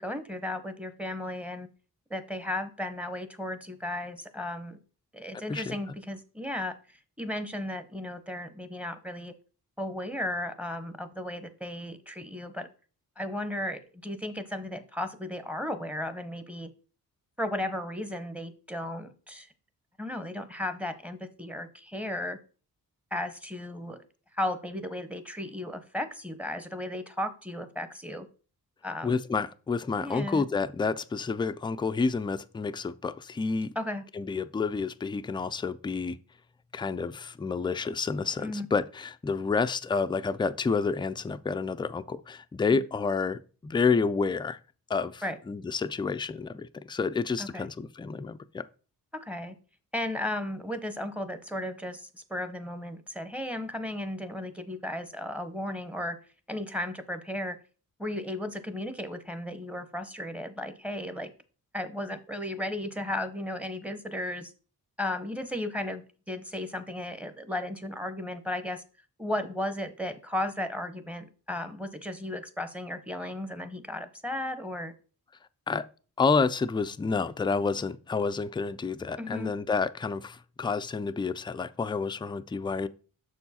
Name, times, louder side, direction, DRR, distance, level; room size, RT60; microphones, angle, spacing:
voice 1, 0.0-1.7 2.1-4.8 5.1-9.3 9.8-12.7 13.2-16.7 17.4-19.5 20.0-22.4 23.1-24.0 24.3-28.3 28.8-29.2 30.0-30.4 33.8-34.0 38.4-38.7 42.7-42.8 45.2-45.4 47.4-47.7 49.1-49.5 49.9-56.2 56.5-57.6 58.0-61.3 61.7-64.5 65.0-68.8 69.2-74.9 79.2-79.5, left 1 dB, 5° right, 0.8 m, -35 dB
voice 2, 29.0-33.7 34.1-36.2 36.7-44.6 44.9-48.6 75.7-75.8 76.2-82.9, left 4 dB, 15° left, 0.3 m, -29 dB
6.5 x 4.6 x 4.2 m
cardioid pair, 75°, 36 cm